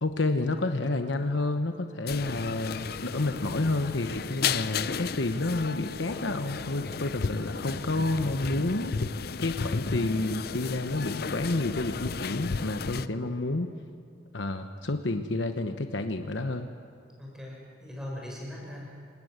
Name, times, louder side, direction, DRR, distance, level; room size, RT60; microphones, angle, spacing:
voice 1, 0.0-9.0 9.4-13.7 14.3-16.7, left 2 dB, 75° left, 6 dB, 1.1 m, -30 dB
sound 1, 2.1-13.1, left 5 dB, 55° left, 0.5 m, -34 dB
voice 2, 12.9-13.6 17.2-19.0, left 1 dB, 5° right, -3 dB, 7.0 m, -41 dB
28.0 x 19.5 x 8.1 m, 2.2 s
head